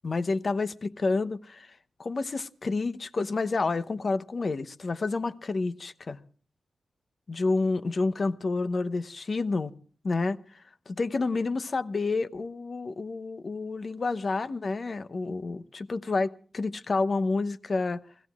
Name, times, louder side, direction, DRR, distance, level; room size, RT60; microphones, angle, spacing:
voice 1, 0.0-1.7 2.0-6.2 7.3-9.7 10.0-10.4 10.9-18.0, left 3 dB, 55° left, 0.8 m, -29 dB
29.0 x 17.0 x 2.4 m
cardioid pair, 60°, 0 cm